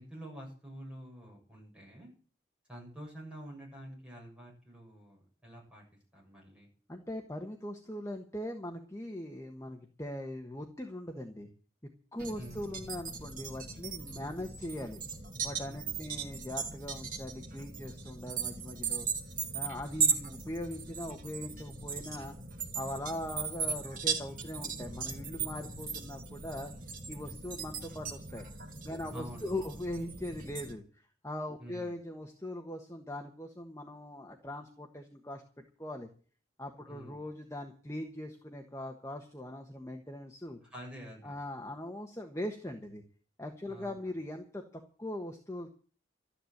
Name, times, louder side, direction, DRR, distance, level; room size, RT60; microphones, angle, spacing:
voice 1, 0.0-2.1 2.7-5.8 6.1-6.7 12.4-12.6 16.0-16.2 29.1-29.7 31.6-31.9 36.9-37.2 40.7-41.3 43.7-43.9, right 1 dB, 5° right, -3 dB, 7.4 m, -48 dB
voice 2, 6.9-11.5 12.1-15.0 15.4-19.1 19.5-22.4 22.7-26.7 27.1-28.4 28.8-35.4 35.8-36.1 36.6-40.6 41.2-43.0 43.4-45.7, left 1 dB, 15° left, 3 dB, 1.3 m, -40 dB
sound 1, 12.2-30.7, right 5 dB, 45° right, 2.5 m, -38 dB
13.0 x 10.0 x 7.9 m, 0.41 s
head